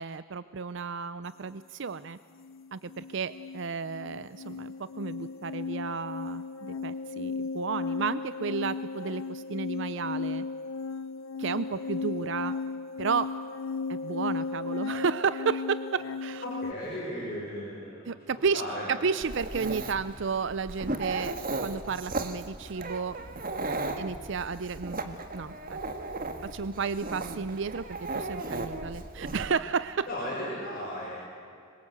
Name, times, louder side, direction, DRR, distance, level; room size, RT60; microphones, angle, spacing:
voice 1, 0.0-2.2 2.7-10.4 11.4-12.5 13.0-13.3 13.9-16.4 18.1-18.6 18.9-21.4 21.6-23.2 24.0-25.8 26.4-27.9 28.1-30.1, right 5 dB, 60° right, 14 dB, 0.5 m, -32 dB
sound 1, 1.9-2.1 2.4-16.7, left 4 dB, 70° left, 0.8 m, -35 dB
voice 2, 16.4-18.1 18.5-18.9 30.0-31.1, equal, 45° left, -6 dB, 6.6 m, -35 dB
Dog, 19.2-29.5, right 2 dB, 40° right, 1.7 m, -36 dB
26.0 x 23.0 x 8.1 m, 2.4 s
head